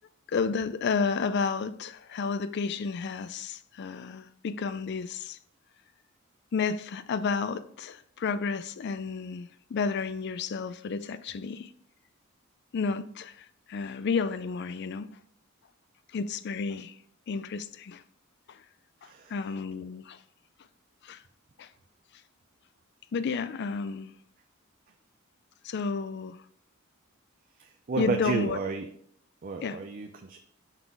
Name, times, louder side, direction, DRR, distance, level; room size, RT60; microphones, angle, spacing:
voice 1, 0.3-5.4 6.5-11.7 12.7-15.2 16.1-17.0 17.3-18.0 18.5-18.6 19.3-20.2 21.0-21.2 21.6-21.7 23.1-24.1 25.6-26.4 28.0-28.6 29.6-29.8, left 5 dB, 50° left, 0.4 m, -31 dB
voice 2, 19.0-19.3 27.6-28.9 29.4-30.4, right 4 dB, 40° right, 0.4 m, -32 dB
5.7 x 3.9 x 4.6 m
head